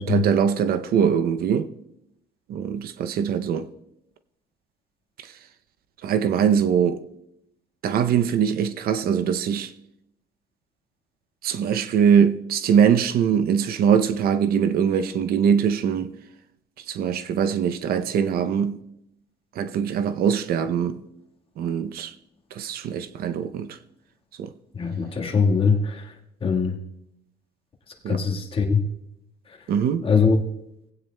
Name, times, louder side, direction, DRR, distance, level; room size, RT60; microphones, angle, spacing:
voice 1, 0.0-1.7 2.5-3.7 6.0-7.0 7.8-9.7 11.4-16.1 16.9-18.8 19.6-21.0 21.6-22.1 22.5-23.8 24.4-24.5 28.0-28.2 29.7-30.1, right 7 dB, 65° right, 0.6 m, -22 dB
voice 2, 24.7-26.1 26.4-26.8 28.1-28.8 30.0-30.4, left 5 dB, 35° left, 1.6 m, -22 dB
18.5 x 8.9 x 2.2 m
cardioid pair, 110°, 17 cm